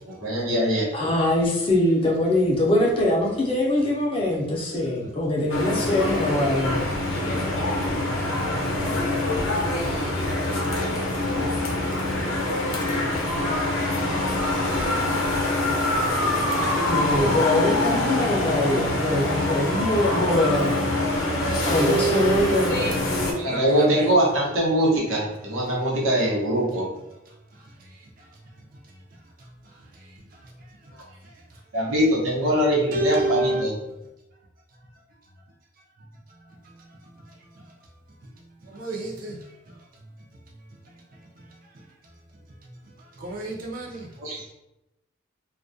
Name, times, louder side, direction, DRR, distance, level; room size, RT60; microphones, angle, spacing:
voice 1, 0.0-0.9 23.4-26.9 31.7-33.7 44.2-44.5, equal, 85° right, 0.8 m, -22 dB
voice 2, 0.9-6.9 16.9-20.8 21.6-22.9, left 1 dB, 25° left, 0.4 m, -23 dB
sound 1, 5.5-23.3, left 1 dB, 80° left, 0.5 m, -24 dB
voice 3, 23.5-23.9 32.9-33.6 38.7-39.4 43.2-44.1, right 2 dB, 45° right, 0.4 m, -28 dB
2.3 x 2.2 x 2.5 m
head